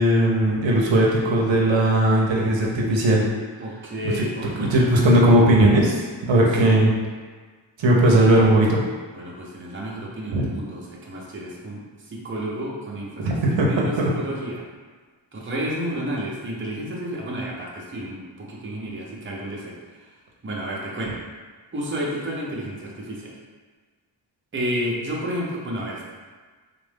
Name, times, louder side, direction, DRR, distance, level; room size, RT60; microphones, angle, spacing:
voice 1, 0.0-3.2 4.2-4.3 4.6-6.9 7.8-8.8 10.3-10.4 13.2-14.1, right 1 dB, 70° right, -2 dB, 0.7 m, -18 dB
voice 2, 3.6-5.0 6.6-6.8 9.1-14.6 15.3-20.1 20.4-21.2 21.7-23.3 24.5-26.0, equal, 25° right, -4 dB, 0.8 m, -31 dB
3.7 x 2.5 x 3.5 m, 1.4 s
wide cardioid pair, 90°, 47 cm